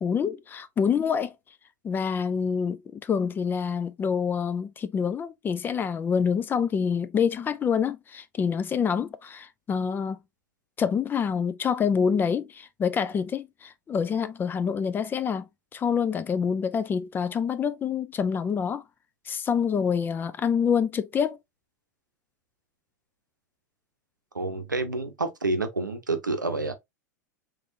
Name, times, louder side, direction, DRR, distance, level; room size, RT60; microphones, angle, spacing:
voice 1, 0.0-1.3 1.8-10.2 10.8-18.8 19.3-21.4, left 6 dB, 20° left, 0.4 m, -26 dB
voice 2, 24.3-26.7, right 3 dB, 90° right, 0.7 m, -28 dB
3.6 x 3.3 x 2.6 m
figure-of-eight pair, 90°, 10 cm